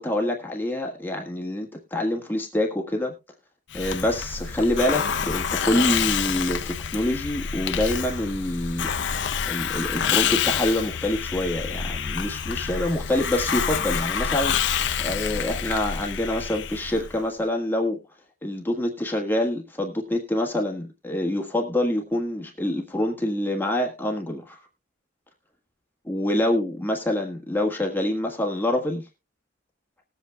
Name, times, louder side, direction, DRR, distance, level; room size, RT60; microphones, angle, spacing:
voice 1, 0.0-3.1 3.7-8.9 9.5-18.0 18.4-24.6 26.0-29.1, left 1 dB, 10° left, 1 dB, 1.4 m, -26 dB
Hiss, 3.7-17.2, left 7 dB, 60° left, 0.6 m, -27 dB
19.5 x 8.2 x 2.2 m, 0.26 s
head